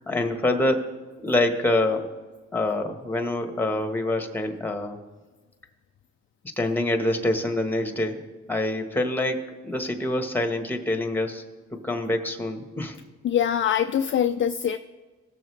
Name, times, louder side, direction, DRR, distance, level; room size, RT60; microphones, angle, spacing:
voice 1, 0.1-0.9 1.2-2.1 2.5-5.0 6.6-8.2 8.5-11.4 11.7-13.0, left 1 dB, 5° left, 4 dB, 1.2 m, -26 dB
voice 2, 13.2-14.8, left 9 dB, 40° left, 8 dB, 0.4 m, -23 dB
17.0 x 6.9 x 3.2 m, 1.3 s
cardioid pair, 90°, 30 cm